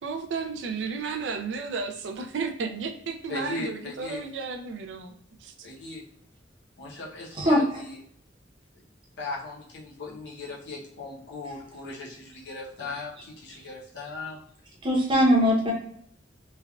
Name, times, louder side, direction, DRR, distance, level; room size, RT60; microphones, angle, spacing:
voice 1, 0.0-5.1, right 4 dB, 80° right, 6 dB, 0.4 m, -33 dB
voice 2, 3.3-4.2 5.6-6.0 6.8-8.0 9.2-14.4, left 2 dB, 75° left, -4 dB, 0.8 m, -38 dB
voice 3, 14.8-15.7, equal, 30° right, -2 dB, 0.8 m, -20 dB
3.3 x 2.2 x 2.3 m, 0.65 s
head